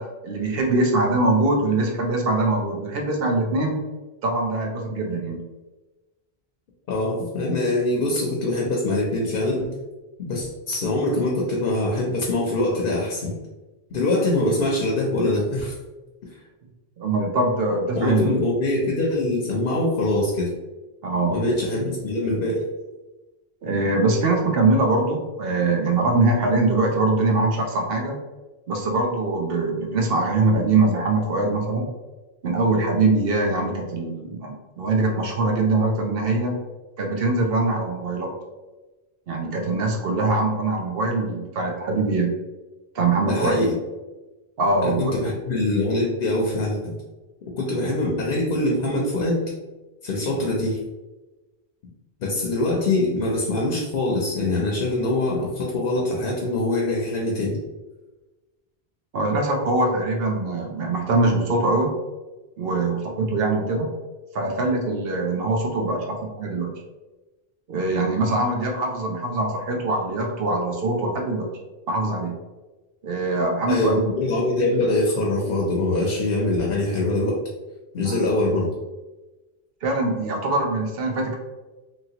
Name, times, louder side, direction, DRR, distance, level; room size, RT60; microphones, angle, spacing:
voice 1, 0.0-3.8 4.2-5.4 17.0-18.4 21.0-21.4 23.6-28.2 28.7-31.9 32.4-36.6 37.0-38.3 39.3-42.3 42.9-43.6 44.6-45.1 59.1-61.9 62.6-63.9 64.3-66.7 67.7-71.5 71.9-72.3 73.0-74.1 78.0-78.2 79.8-81.4, right 2 dB, 65° right, 1 dB, 0.8 m, -23 dB
voice 2, 6.9-9.7 10.2-13.3 13.9-15.7 18.0-20.5 21.3-22.6 43.2-43.7 44.8-46.9 47.6-49.4 50.0-50.8 52.2-57.6 73.7-77.4 77.9-78.7, left 2 dB, 65° left, -2 dB, 0.8 m, -23 dB
2.9 x 2.8 x 2.8 m, 1.2 s
omnidirectional pair, 1.1 m